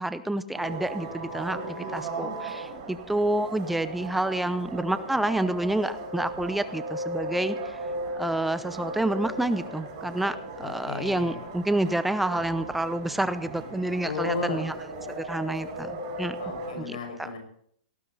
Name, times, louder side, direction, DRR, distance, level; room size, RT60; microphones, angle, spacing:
voice 1, 0.0-7.8 8.1-14.8 15.2-16.4 16.8-17.3, right 1 dB, 5° right, 12 dB, 0.7 m, -29 dB
sound 1, 0.5-16.7, right 2 dB, 40° right, 7.4 m, -37 dB
voice 2, 10.6-11.4 14.0-14.7 16.4-17.4, left 4 dB, 65° left, 3 dB, 5.7 m, -33 dB
18.0 x 14.5 x 4.1 m, 0.62 s
hypercardioid pair, 155°, 4 cm